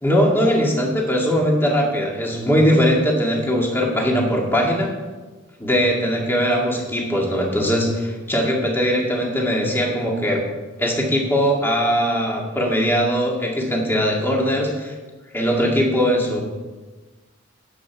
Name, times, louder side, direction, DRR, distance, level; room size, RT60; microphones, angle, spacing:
voice 1, 0.0-4.9 5.6-10.4 10.8-15.0 15.3-16.4, equal, 10° left, -2 dB, 2.1 m, -20 dB
18.5 x 8.0 x 4.6 m, 1.3 s
head